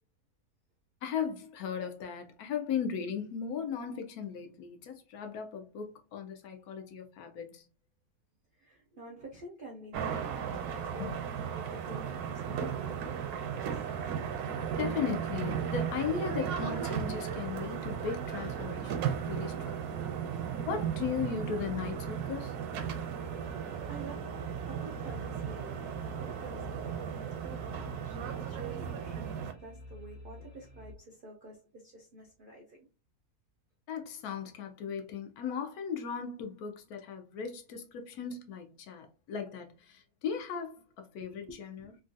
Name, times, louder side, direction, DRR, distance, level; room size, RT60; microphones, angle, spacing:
voice 1, 1.0-7.6 11.0-11.1 14.8-20.1 20.7-22.5 33.9-41.9, left 7 dB, 80° left, 1.1 m, -37 dB
voice 2, 8.5-13.9 23.9-24.3 24.7-32.8 41.4-42.0, right 2 dB, 65° right, 0.5 m, -49 dB
sound 1, 9.9-29.5, right 8 dB, 85° right, 1.1 m, -36 dB
sound 2, 19.9-30.9, left 2 dB, 35° left, 0.6 m, -50 dB
3.0 x 2.5 x 2.6 m
omnidirectional pair, 1.6 m